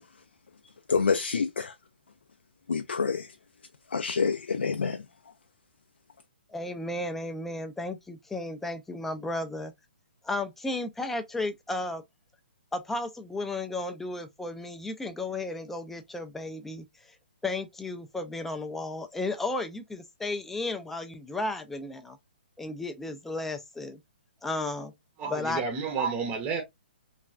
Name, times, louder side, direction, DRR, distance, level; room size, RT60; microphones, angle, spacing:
voice 1, 0.9-1.7 2.7-3.3 3.9-5.0, left 5 dB, 85° left, 0.3 m, -27 dB
voice 2, 6.5-9.7 10.2-12.0 12.7-17.1 17.4-22.2 22.6-24.0 24.4-24.9 25.3-25.6, left 2 dB, 5° left, 0.3 m, -34 dB
voice 3, 25.2-26.6, right 5 dB, 25° right, 0.7 m, -30 dB
3.1 x 2.2 x 2.4 m
hypercardioid pair, 140°, 6 cm